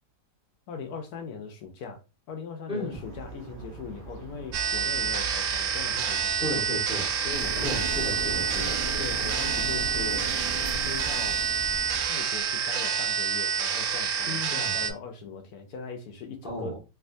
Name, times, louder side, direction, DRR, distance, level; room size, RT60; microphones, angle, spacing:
voice 1, 0.7-2.0 2.3-6.7 7.2-7.7 9.0-10.4 10.8-11.4 12.0-16.7, left 5 dB, 75° left, 1.1 m, -40 dB
voice 2, 2.7-3.0 6.4-7.1 7.6-8.8 14.2-14.8 16.4-16.8, left 1 dB, 5° right, 1.0 m, -34 dB
sound 1, 2.9-12.0, right 5 dB, 90° right, 0.4 m, -43 dB
sound 2, 4.5-14.9, right 7 dB, 70° right, 1.1 m, -28 dB
sound 3, 7.3-12.1, equal, 40° right, 1.1 m, -37 dB
3.3 x 2.7 x 2.6 m
omnidirectional pair, 1.7 m